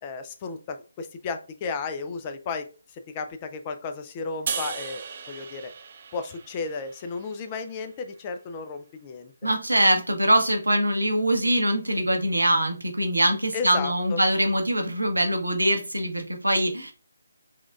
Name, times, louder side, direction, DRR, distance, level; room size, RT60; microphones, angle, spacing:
voice 1, 0.0-5.7 6.1-9.3 13.5-14.2, left 4 dB, 25° left, 8 dB, 0.4 m, -34 dB
sound 1, 4.5-7.7, right 6 dB, 40° right, 0.4 m, -36 dB
voice 2, 9.4-16.9, right 1 dB, 80° right, 4 dB, 0.9 m, -23 dB
6.0 x 2.3 x 2.3 m, 0.35 s
figure-of-eight pair, 145°, 0 cm